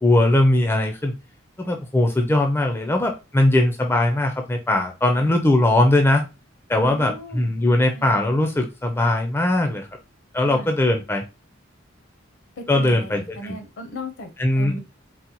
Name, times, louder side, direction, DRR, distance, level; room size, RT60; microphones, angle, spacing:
voice 1, 0.0-1.1 1.6-6.2 6.7-9.9 10.3-11.2 12.7-13.2 13.5-13.6 14.4-14.8, left 1 dB, 10° left, 3 dB, 0.3 m, -20 dB
voice 2, 6.9-8.1 10.4-10.7 12.6-14.8, left 1 dB, 70° left, 7 dB, 0.7 m, -37 dB
3.9 x 2.0 x 2.8 m, 0.27 s
head